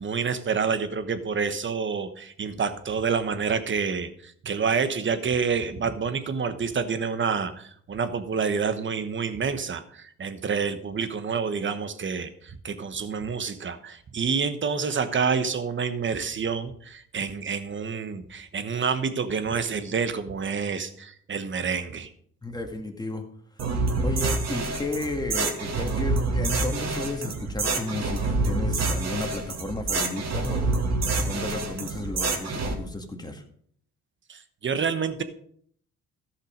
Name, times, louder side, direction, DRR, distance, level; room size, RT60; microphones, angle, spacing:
voice 1, 0.0-22.1 34.3-35.2, right 5 dB, 40° right, 11 dB, 1.2 m, -28 dB
voice 2, 22.4-23.2 24.0-33.4, left 2 dB, 15° left, 3 dB, 2.0 m, -33 dB
sound 1, 23.6-32.7, right 3 dB, 60° right, 2.2 m, -27 dB
14.0 x 5.7 x 5.1 m, 0.63 s
cardioid pair, 90°, 30 cm